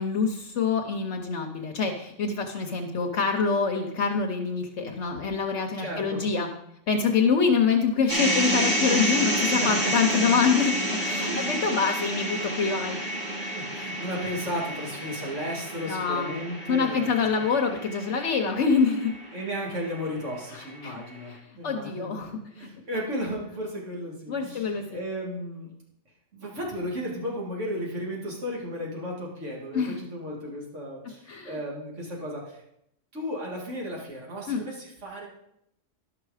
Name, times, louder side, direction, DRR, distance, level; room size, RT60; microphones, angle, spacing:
voice 1, 0.0-6.5 6.9-10.7 11.0-13.0 14.1-14.2 15.9-16.3 16.7-19.1 20.5-21.0 21.6-22.7 24.3-25.0 29.7-30.0 31.3-31.6 34.5-34.6, left 5 dB, 70° left, 2 dB, 1.1 m, -25 dB
voice 2, 5.8-6.2 9.6-10.2 11.3-11.6 13.5-17.4 19.3-25.7 26.3-32.6 33.1-35.3, equal, 85° right, -3 dB, 2.5 m, -34 dB
sound 1, 8.1-20.2, right 1 dB, 40° right, 1.6 m, -29 dB
11.0 x 6.0 x 4.8 m, 0.77 s
omnidirectional pair, 1.2 m